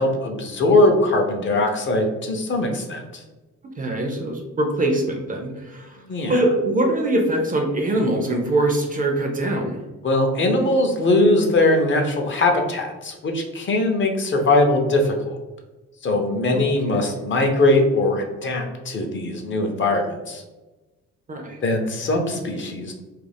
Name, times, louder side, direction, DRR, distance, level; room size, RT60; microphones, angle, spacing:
voice 1, 0.0-3.2 6.0-6.4 10.0-15.4 16.0-20.4 21.6-22.9, left 2 dB, 40° left, 3 dB, 0.5 m, -21 dB
voice 2, 3.8-6.0 6.3-9.8 16.5-16.6 17.0-17.2 21.3-21.6, right 1 dB, 30° right, 2 dB, 0.4 m, -23 dB
2.4 x 2.0 x 3.3 m, 1.1 s
cardioid pair, 90°, 30 cm